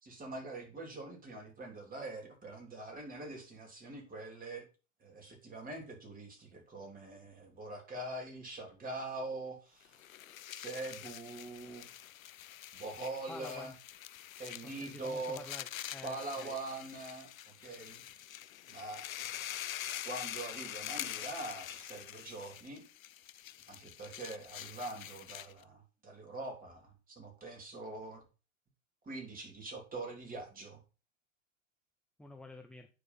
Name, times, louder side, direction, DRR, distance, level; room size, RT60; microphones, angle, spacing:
voice 1, 0.0-4.7 5.0-10.0 10.5-11.9 12.7-13.7 14.4-15.4 16.0-17.3 17.6-18.0 18.7-19.4 20.1-22.9 23.7-28.2 29.0-30.8, right 2 dB, 20° right, 2 dB, 3.5 m, -43 dB
sound 1, 9.9-25.6, left 12 dB, 75° left, 0.7 m, -45 dB
voice 2, 13.3-13.7 14.6-16.5 32.2-32.9, left 2 dB, ahead, 5 dB, 0.7 m, -49 dB
9.6 x 4.8 x 5.7 m, 0.33 s
hypercardioid pair, 95°, 41 cm